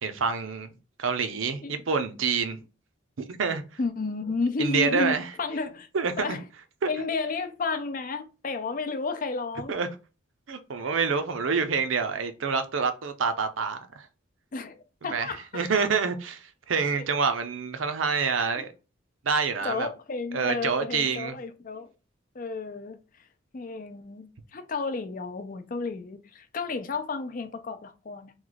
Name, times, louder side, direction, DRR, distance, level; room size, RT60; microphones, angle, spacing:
voice 1, 0.0-0.7 1.0-2.6 3.2-3.6 4.6-5.2 5.9-6.4 6.8-6.9 9.7-9.9 10.5-14.1 15.1-18.7 19.2-19.9 20.3-21.4, right 5 dB, 80° right, 0.6 m, -27 dB
voice 2, 3.8-5.9 6.2-6.4 6.9-9.8 11.1-11.2 14.5-15.6 17.0-17.1 18.5-18.6 19.6-21.9 22.3-23.0 23.5-28.3, left 3 dB, 45° left, 0.5 m, -32 dB
3.1 x 2.3 x 3.9 m
head